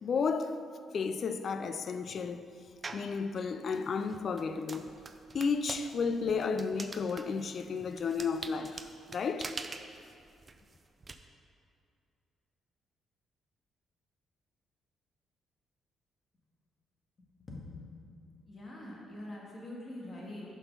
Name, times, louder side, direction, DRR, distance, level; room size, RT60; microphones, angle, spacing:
voice 1, 0.0-0.6 0.9-2.5 2.9-4.9 5.3-9.6, left 5 dB, 50° left, 0.3 m, -33 dB
sound 1, 2.8-3.2 3.7-11.1, right 3 dB, 30° right, 0.4 m, -44 dB
voice 2, 17.5-18.0 18.5-20.6, left 1 dB, 35° left, 1.8 m, -44 dB
6.0 x 5.8 x 5.4 m
cardioid pair, 90°, 0 cm